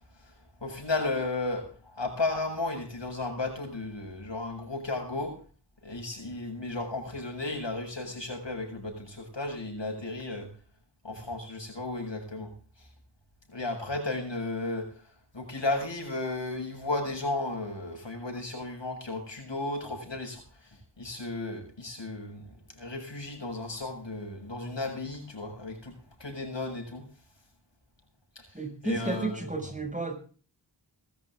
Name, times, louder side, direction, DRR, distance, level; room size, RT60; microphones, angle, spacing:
voice 1, 0.6-1.7 2.0-5.3 5.8-10.5 11.0-12.5 13.5-14.9 15.3-20.4 21.0-22.4 22.8-25.9 26.2-27.0 28.8-29.4, left 2 dB, 75° left, 2 dB, 7.7 m, -34 dB
voice 2, 28.5-30.2, right 2 dB, 15° right, 6 dB, 6.6 m, -32 dB
20.5 x 13.5 x 3.7 m, 0.40 s
wide cardioid pair, 50°, 44 cm